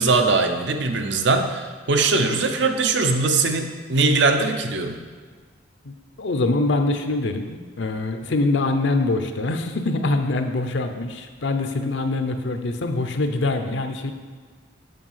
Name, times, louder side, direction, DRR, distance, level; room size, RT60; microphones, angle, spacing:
voice 1, 0.0-5.0, right 3 dB, 65° right, 6 dB, 0.7 m, -21 dB
voice 2, 5.8-14.1, left 2 dB, 65° left, 6 dB, 0.6 m, -24 dB
7.6 x 5.3 x 5.6 m, 1.5 s
head